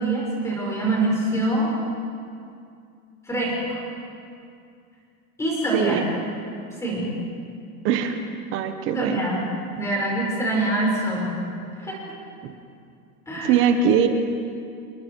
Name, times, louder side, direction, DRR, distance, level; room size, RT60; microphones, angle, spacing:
voice 1, 0.0-1.7 3.2-3.8 5.4-6.0 6.8-7.2 8.9-9.5 9.7-11.3 11.7-12.0 13.3-13.6, right 1 dB, 5° left, -3 dB, 4.9 m, -25 dB
voice 2, 7.8-8.2 8.5-9.2 12.4-12.5 13.4-14.1, right 8 dB, 30° right, 7 dB, 1.2 m, -21 dB
29.0 x 21.0 x 4.6 m, 2.4 s
supercardioid pair, 175°, 42 cm